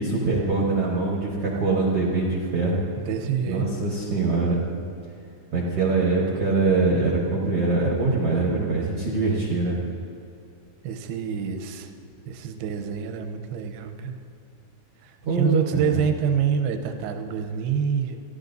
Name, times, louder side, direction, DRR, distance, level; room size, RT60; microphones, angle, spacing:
voice 1, 0.0-2.8 3.5-4.6 5.5-9.8 15.2-16.0, right 3 dB, 60° right, -3 dB, 1.5 m, -23 dB
voice 2, 3.0-3.7 10.8-11.9 12.3-14.2 15.0-18.2, right 7 dB, 85° right, 5 dB, 2.8 m, -27 dB
28.5 x 12.0 x 2.7 m, 2.6 s
omnidirectional pair, 4.5 m